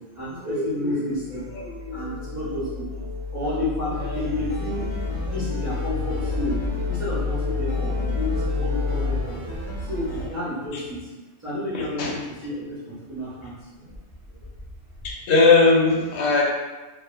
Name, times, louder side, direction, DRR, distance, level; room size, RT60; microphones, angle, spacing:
voice 1, 0.1-3.0 3.3-6.6 6.9-9.4 9.9-11.0 11.4-13.5 13.8-13.9, left 1 dB, 20° right, -11 dB, 0.4 m, -30 dB
sound 1, 1.1-9.2, left 4 dB, 85° right, 0.4 m, -29 dB
sound 2, 3.9-10.3, right 1 dB, 65° left, 0.8 m, -35 dB
voice 2, 11.7-12.1 15.0-16.4, left 3 dB, 90° left, -2 dB, 1.2 m, -18 dB
2.9 x 2.2 x 2.2 m, 1.2 s
omnidirectional pair, 1.8 m